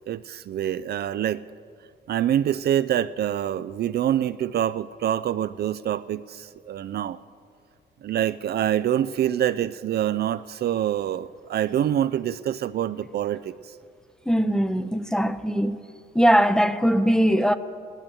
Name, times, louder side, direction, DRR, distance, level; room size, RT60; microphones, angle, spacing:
voice 1, 0.0-1.5 2.1-7.2 8.0-13.7, right 11 dB, 55° right, 0.4 m, -26 dB
voice 2, 14.3-15.8 16.1-17.5, equal, 5° left, 0.6 m, -20 dB
15.0 x 11.5 x 7.0 m
cardioid pair, 90°, 20 cm